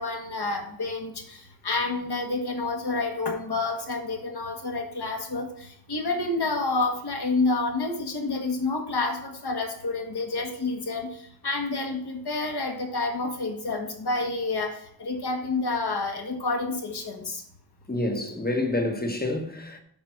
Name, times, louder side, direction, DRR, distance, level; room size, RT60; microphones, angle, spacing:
voice 1, 0.0-1.4 1.6-11.1 11.4-17.4, left 3 dB, 60° left, 1.6 m, -29 dB
voice 2, 17.9-19.8, left 2 dB, 20° left, 1.1 m, -28 dB
8.5 x 5.1 x 5.8 m
wide cardioid pair, 110°, 44 cm